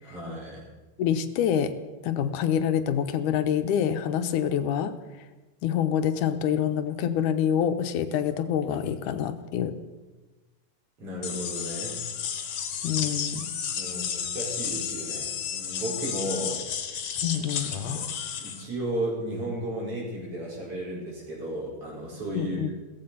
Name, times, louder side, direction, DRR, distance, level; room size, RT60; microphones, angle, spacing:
voice 1, 0.0-0.6 11.0-12.0 13.7-16.6 17.5-18.1 18.4-22.6, right 1 dB, 45° right, -3 dB, 6.3 m, -34 dB
voice 2, 1.0-1.7 2.0-4.9 5.6-9.8 12.8-13.5 17.2-17.7 22.3-22.7, left 9 dB, 90° left, 10 dB, 2.4 m, -26 dB
sound 1, 11.2-18.6, left 8 dB, 60° left, 2.3 m, -32 dB
17.0 x 14.5 x 5.7 m, 1.2 s
omnidirectional pair, 3.5 m